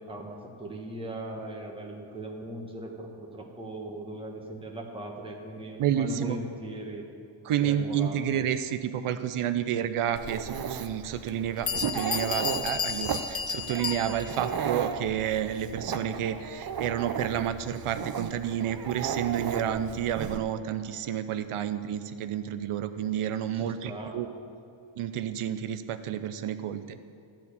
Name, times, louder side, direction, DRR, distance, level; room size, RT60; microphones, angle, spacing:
voice 1, 0.0-7.1 7.6-8.4 23.5-24.1, right 1 dB, 10° right, -1 dB, 1.3 m, -39 dB
voice 2, 5.8-6.4 7.4-24.3 25.0-27.0, right 9 dB, 90° right, 11 dB, 0.7 m, -30 dB
Dog, 10.2-20.4, right 7 dB, 45° right, 0.6 m, -35 dB
Bell, 10.5-10.6 11.3-11.4 11.7-14.5, left 6 dB, 30° left, 0.4 m, -32 dB
12.5 x 4.5 x 8.4 m, 2.6 s
wide cardioid pair, 105°, 50 cm